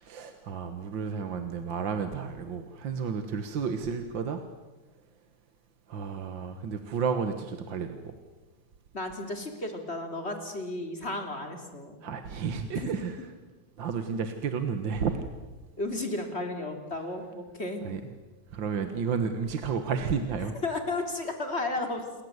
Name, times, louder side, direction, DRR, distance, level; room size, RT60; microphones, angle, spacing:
voice 1, 0.0-4.4 5.9-8.2 12.0-13.2 13.8-15.2 17.8-18.0 18.5-20.5, right 6 dB, 70° right, 7 dB, 2.2 m, -31 dB
voice 2, 8.9-12.0 12.8-12.9 15.8-17.8 20.6-22.1, left 2 dB, 30° left, 5 dB, 3.5 m, -33 dB
28.5 x 23.0 x 8.1 m, 1.2 s
omnidirectional pair, 2.1 m